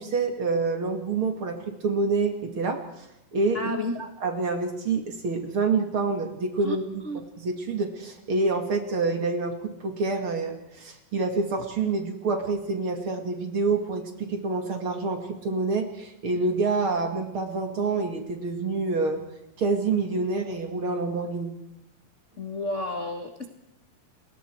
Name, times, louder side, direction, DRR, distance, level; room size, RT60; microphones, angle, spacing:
voice 1, 0.0-2.8 3.3-3.7 4.2-7.0 7.4-19.2 19.6-21.5, right 3 dB, 40° right, 5 dB, 2.7 m, -27 dB
voice 2, 3.5-4.0 6.6-6.8 7.0-7.2 22.4-23.5, left 1 dB, 45° left, 5 dB, 0.9 m, -31 dB
30.0 x 21.0 x 4.7 m, 0.87 s
omnidirectional pair, 3.9 m